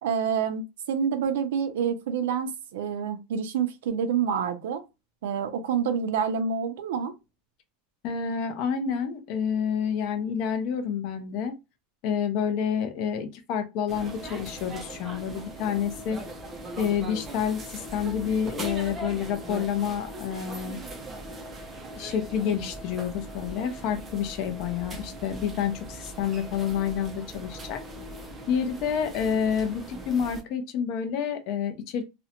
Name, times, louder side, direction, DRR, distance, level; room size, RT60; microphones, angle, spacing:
voice 1, 0.0-4.8 5.2-7.1, right 7 dB, 75° right, 0.5 m, -27 dB
voice 2, 8.0-11.5 12.0-16.2 16.8-20.8 22.0-27.8 28.5-32.0, left 8 dB, 40° left, 0.5 m, -28 dB
sound 1, 13.9-30.4, right 1 dB, 15° right, 0.4 m, -40 dB
2.5 x 2.1 x 2.8 m
supercardioid pair, 175°, 0 cm